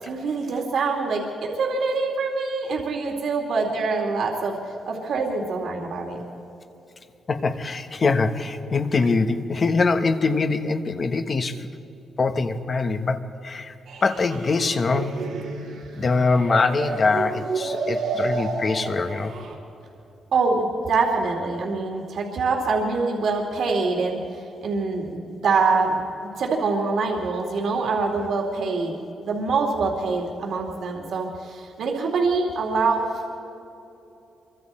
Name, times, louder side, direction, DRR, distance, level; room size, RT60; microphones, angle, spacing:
voice 1, 0.0-4.6 4.9-6.2 20.3-33.3, right 4 dB, 65° right, 0 dB, 2.5 m, -25 dB
voice 2, 7.3-11.7 12.2-13.7 14.0-15.1 16.0-19.3, left 4 dB, 35° left, 8 dB, 1.1 m, -23 dB
sound 1, 13.9-19.5, right 4 dB, 85° right, 4.2 m, -31 dB
27.0 x 24.0 x 4.3 m, 2.9 s
cardioid pair, 145°, 0 cm